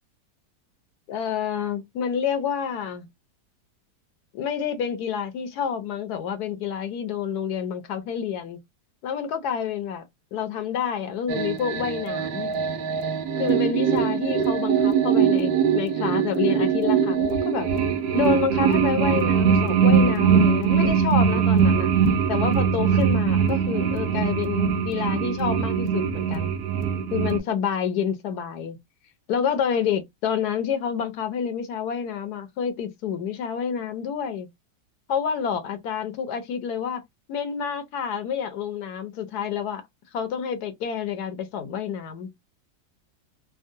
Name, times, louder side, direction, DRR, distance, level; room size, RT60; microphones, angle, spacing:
voice 1, 1.1-3.1 4.3-8.6 9.0-10.0 10.3-12.5 13.4-17.7 18.1-21.9 22.3-26.5 27.1-28.8 29.3-34.5 35.1-37.0 37.3-39.8 40.1-42.3, left 7 dB, 70° left, 1.1 m, -28 dB
sound 1, 11.3-27.4, right 7 dB, 80° right, 1.3 m, -22 dB
3.6 x 2.0 x 2.5 m
omnidirectional pair, 1.9 m